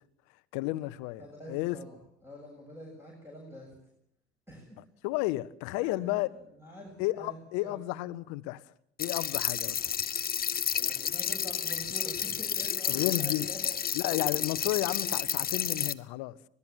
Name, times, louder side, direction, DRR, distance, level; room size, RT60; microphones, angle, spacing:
voice 1, 0.5-1.2 1.5-1.8 5.0-6.3 7.0-8.6 9.0-9.8 12.9-13.5 13.9-16.4, left 18 dB, 55° left, 1.1 m, -32 dB
voice 2, 1.2-3.7 4.5-4.8 5.7-7.8 10.7-14.6, equal, 5° right, 7.9 m, -47 dB
sound 1, 9.0-15.9, left 8 dB, 25° left, 1.0 m, -31 dB
25.5 x 18.5 x 7.3 m
figure-of-eight pair, 60°, 33 cm